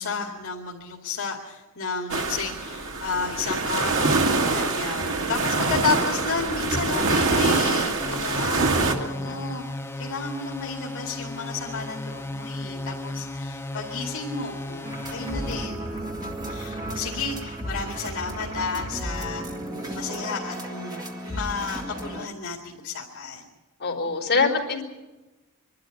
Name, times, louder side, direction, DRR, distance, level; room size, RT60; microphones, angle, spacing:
voice 1, 0.0-8.7 9.1-19.4 19.7-23.4, left 4 dB, 65° left, -1 dB, 2.4 m, -32 dB
sound 1, 2.1-8.9, right 3 dB, 60° right, 2.1 m, -24 dB
sound 2, 8.0-15.7, left 2 dB, 10° left, 0.6 m, -35 dB
voice 2, 9.0-9.4 16.7-17.0 23.8-24.8, left 4 dB, 45° left, -1 dB, 4.1 m, -26 dB
sound 3, 14.8-22.3, right 1 dB, 20° right, 2.0 m, -34 dB
25.0 x 12.5 x 9.9 m, 1.1 s
head